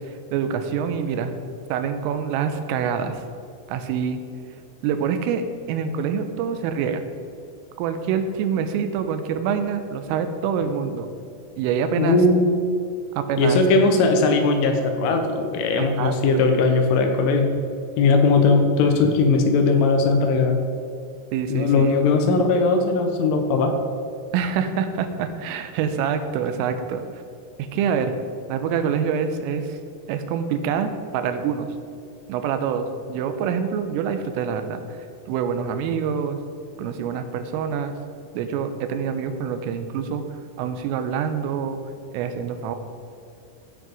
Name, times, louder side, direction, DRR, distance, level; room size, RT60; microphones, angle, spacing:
voice 1, 0.3-1.3 1.7-3.2 3.7-4.2 4.8-7.0 7.8-11.1 11.6-12.2 13.2-13.6 15.8-16.5 21.3-21.9 24.3-27.2 27.6-28.1 28.5-29.8 30.1-31.7 32.3-36.4 36.8-38.0 38.3-41.8 42.1-42.8, right 7 dB, 85° right, 8 dB, 3.3 m, -26 dB
voice 2, 12.0-12.6 13.4-17.5 18.0-20.6 21.5-23.7, left 3 dB, 80° left, 4 dB, 3.4 m, -19 dB
15.0 x 6.4 x 5.4 m, 2.4 s
omnidirectional pair, 5.9 m